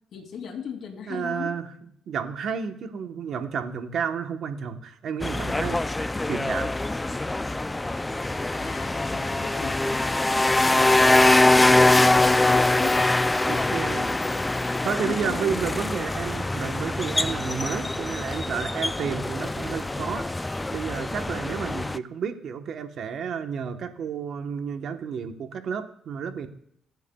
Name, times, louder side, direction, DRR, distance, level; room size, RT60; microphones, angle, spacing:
voice 1, 0.1-1.5 8.6-11.0 11.3-13.0 13.5-14.3 14.7-15.4, left 7 dB, 65° left, 2 dB, 2.6 m, -39 dB
voice 2, 1.1-1.7 2.1-5.8 6.3-6.7 13.4-14.1 14.8-20.2 20.7-26.5, right 7 dB, 65° right, 7 dB, 1.1 m, -31 dB
sound 1, 5.2-22.0, left 2 dB, 15° left, 0.3 m, -23 dB
22.5 x 8.3 x 2.3 m, 0.72 s
cardioid pair, 90°, 0 cm